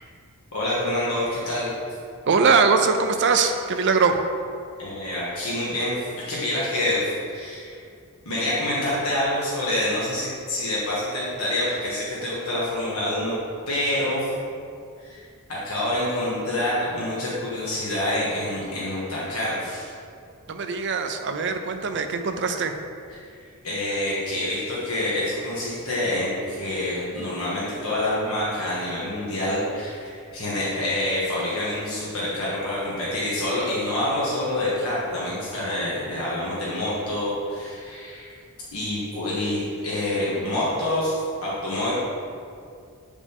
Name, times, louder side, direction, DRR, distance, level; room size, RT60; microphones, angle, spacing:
voice 1, 0.5-1.7 4.8-7.8 8.2-13.3 13.7-14.3 15.0-15.2 15.5-19.9 23.6-38.3 38.7-41.9, left 1 dB, 70° left, -8 dB, 1.6 m, -27 dB
voice 2, 2.3-4.2 20.5-22.7, right 4 dB, 50° right, 6 dB, 0.5 m, -21 dB
8.3 x 5.1 x 3.6 m, 2.3 s
head